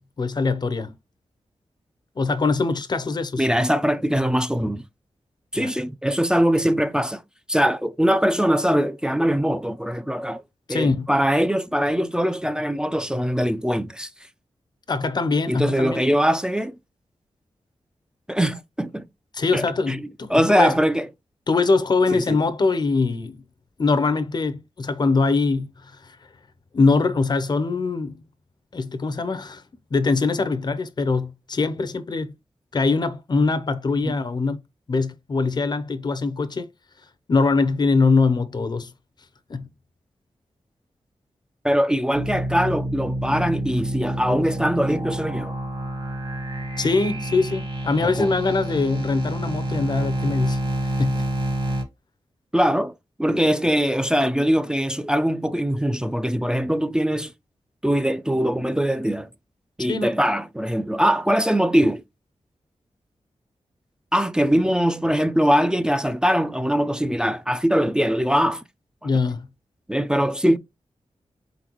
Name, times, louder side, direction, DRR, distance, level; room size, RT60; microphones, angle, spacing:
voice 1, 0.2-0.9 2.2-3.5 5.5-5.7 10.7-11.1 14.9-16.2 19.3-20.7 21.5-23.4 23.8-26.2 26.7-28.2 28.7-29.6 29.9-32.3 32.7-34.6 34.9-36.7 37.3-38.9 39.5-39.7 46.8-51.2 59.9-60.1 69.0-69.5, left 4 dB, 40° left, 0.6 m, -23 dB
voice 2, 3.4-4.8 5.5-7.2 7.5-10.4 10.7-14.1 15.5-16.8 18.3-19.1 19.5-21.1 22.1-22.4 34.0-34.1 41.6-45.6 48.0-48.4 52.5-52.9 53.2-57.3 57.8-59.3 59.8-62.0 64.1-68.6 69.0-69.1 69.9-70.6, equal, 5° right, 0.4 m, -22 dB
sound 1, 42.1-51.8, right 1 dB, 45° right, 1.3 m, -28 dB
4.2 x 3.9 x 2.9 m
wide cardioid pair, 125°, 11 cm